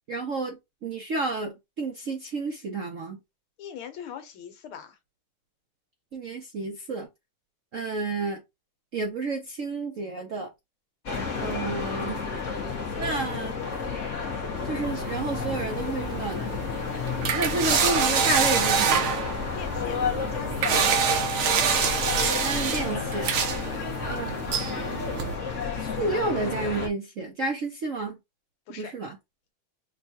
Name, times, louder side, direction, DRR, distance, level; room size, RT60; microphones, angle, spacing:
voice 1, 0.1-3.2 6.1-7.1 7.7-8.4 8.9-10.5 11.4-12.2 13.0-13.5 14.6-16.6 17.3-19.1 22.4-23.3 24.1-24.6 25.8-28.2 28.7-29.2, right 3 dB, 65° right, 0.8 m, -31 dB
voice 2, 3.6-5.0 19.5-20.0 20.3-21.0 23.6-23.8 28.7-28.9, left 8 dB, 85° left, 1.7 m, -41 dB
sound 1, 11.0-26.9, left 5 dB, 45° left, 1.1 m, -31 dB
sound 2, 14.8-25.3, right 7 dB, 80° right, 1.7 m, -27 dB
6.4 x 2.3 x 2.8 m
omnidirectional pair, 2.3 m